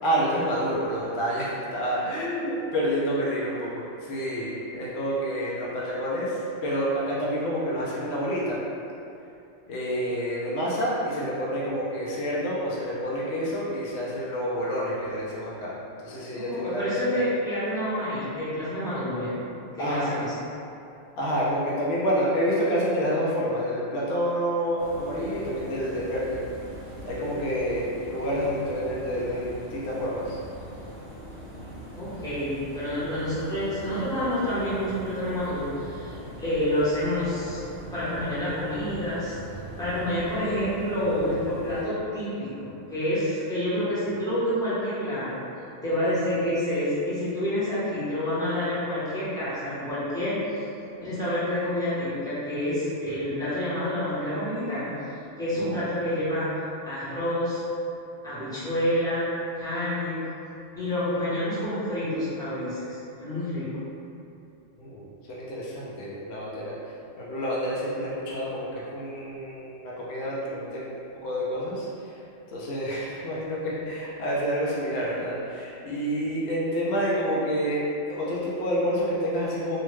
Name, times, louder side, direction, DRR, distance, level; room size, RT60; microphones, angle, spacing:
voice 1, 0.0-8.6 9.7-15.7 16.0-17.2 19.8-20.2 21.2-26.4 27.0-30.4 55.6-55.9 64.8-66.7 67.2-72.1 72.5-77.8 78.1-79.8, equal, 65° left, -7 dB, 0.7 m, -28 dB
voice 2, 16.4-19.3 19.7-20.3 32.0-37.6 37.9-39.4 39.8-50.7 51.0-54.9 55.4-56.5 56.8-57.6 58.2-60.2 60.7-63.7, left 1 dB, 5° left, -13 dB, 0.7 m, -28 dB
sound 1, 24.8-41.9, equal, 65° right, 0.8 m, -41 dB
2.7 x 2.1 x 3.1 m, 2.7 s
omnidirectional pair, 1.3 m